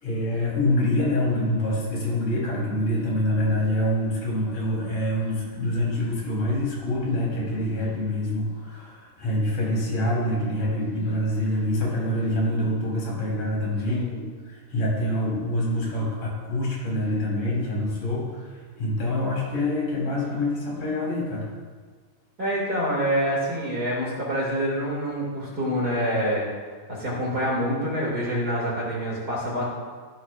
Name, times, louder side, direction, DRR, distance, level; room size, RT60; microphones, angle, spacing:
voice 1, 0.0-21.5, left 1 dB, 50° left, -5 dB, 4.9 m, -26 dB
voice 2, 13.9-14.2 22.4-26.5 26.9-29.6, equal, 30° right, -4 dB, 2.2 m, -26 dB
15.5 x 11.5 x 2.5 m, 1.6 s
omnidirectional pair, 4.7 m